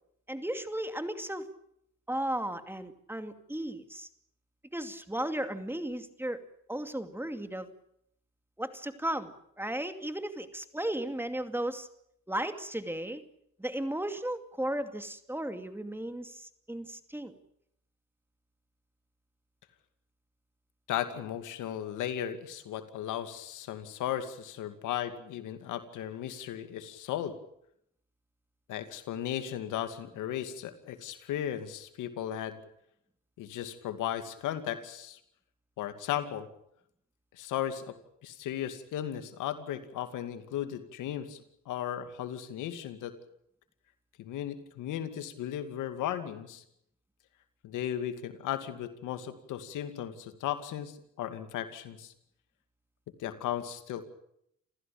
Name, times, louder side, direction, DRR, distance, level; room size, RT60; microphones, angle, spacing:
voice 1, 0.3-1.5 2.1-4.1 4.7-6.4 6.7-7.7 8.6-11.9 12.3-13.2 13.6-17.3, right 1 dB, 5° right, 9 dB, 2.4 m, -35 dB
voice 2, 20.9-27.3 28.7-32.6 33.4-35.2 35.8-36.5 37.3-38.0 38.2-43.1 44.2-46.6 47.6-52.1 53.2-54.0, left 11 dB, 90° left, 9 dB, 2.4 m, -36 dB
28.5 x 15.5 x 8.7 m, 0.74 s
cardioid pair, 90°, 30 cm